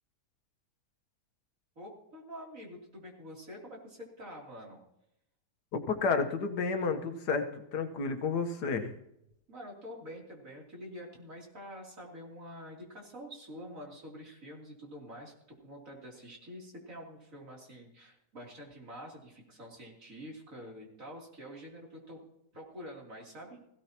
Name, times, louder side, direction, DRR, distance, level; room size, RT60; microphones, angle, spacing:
voice 1, 1.8-4.8 9.5-15.3 15.6-22.2 22.5-23.6, equal, 50° right, -2 dB, 3.6 m, -47 dB
voice 2, 5.7-8.9, left 4 dB, 70° left, 7 dB, 1.7 m, -31 dB
17.5 x 16.0 x 2.9 m, 0.79 s
omnidirectional pair, 1.8 m